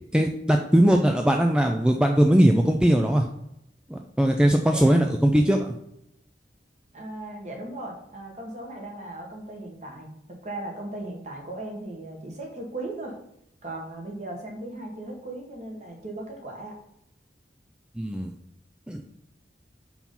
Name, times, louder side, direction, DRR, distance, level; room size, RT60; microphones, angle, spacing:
voice 1, 0.1-3.2 3.9-5.7 18.0-18.3 18.9-19.0, right 1 dB, 5° right, 3 dB, 0.4 m, -20 dB
voice 2, 4.6-5.0 6.9-10.1 10.4-13.1 13.6-16.7, right 2 dB, 40° right, 0 dB, 1.7 m, -37 dB
5.6 x 4.7 x 5.4 m, 0.78 s
head